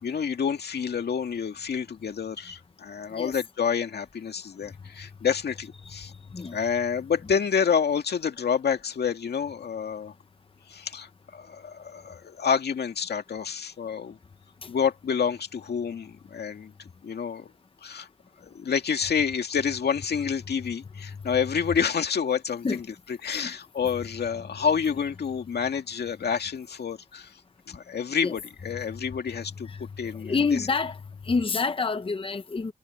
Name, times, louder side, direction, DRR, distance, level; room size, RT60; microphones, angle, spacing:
voice 1, 0.0-6.1 6.5-10.1 10.7-14.2 14.7-16.7 17.0-17.5 17.8-18.1 18.4-22.8 23.2-27.3 27.7-30.6, left 7 dB, 90° left, 2.2 m, -28 dB
voice 2, 30.2-31.0 31.3-32.7, left 4 dB, 35° left, 0.9 m, -27 dB
wide cardioid pair, 115°, 16 cm